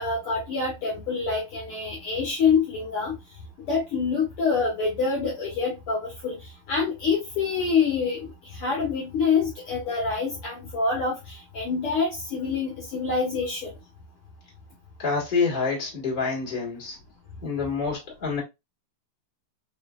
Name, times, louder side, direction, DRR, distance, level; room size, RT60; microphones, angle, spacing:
voice 1, 0.0-3.2 3.6-13.7, left 5 dB, 60° left, 1.6 m, -26 dB
voice 2, 15.0-17.0 17.4-18.4, left 4 dB, 20° left, 1.3 m, -27 dB
4.6 x 3.0 x 2.3 m
omnidirectional pair, 3.4 m